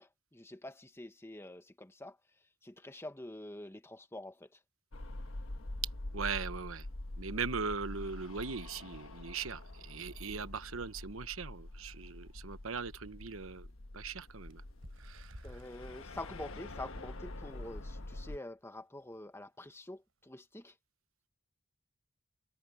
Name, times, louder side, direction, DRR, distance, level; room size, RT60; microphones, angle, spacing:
voice 1, 0.0-2.2 2.6-4.6 15.4-20.7, left 1 dB, 10° left, 1.3 m, -47 dB
sound 1, 4.9-18.4, left 1 dB, 80° left, 1.3 m, -45 dB
voice 2, 6.1-6.8 7.2-13.7 13.9-14.6 15.0-15.4, right 5 dB, 90° right, 1.1 m, -39 dB
Bird, 14.4-17.6 18.1-18.2 18.5-18.8 19.5-19.6, equal, 70° right, 7.9 m, -56 dB
head